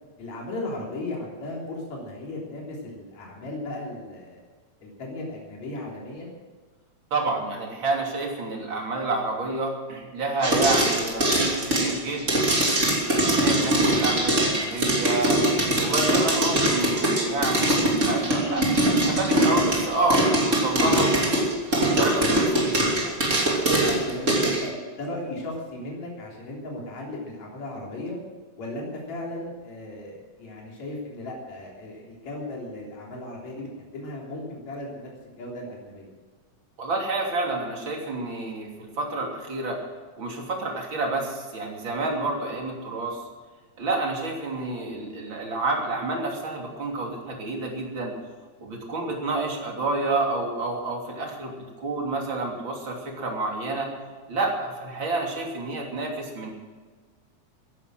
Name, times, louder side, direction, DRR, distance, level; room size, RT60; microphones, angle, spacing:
voice 1, 0.2-4.4 4.8-6.3 24.1-28.2 28.6-36.1, left 1 dB, 65° left, -3 dB, 4.9 m, -36 dB
voice 2, 7.1-12.4 13.2-15.4 15.8-21.3 22.0-23.5 36.8-39.8 40.2-43.2 43.8-48.2 48.6-53.9 54.3-56.5, right 2 dB, 40° right, 0 dB, 3.6 m, -29 dB
sound 1, 10.4-24.6, right 1 dB, 25° right, 3.0 m, -22 dB
15.5 x 11.0 x 7.7 m, 1.4 s
omnidirectional pair, 3.4 m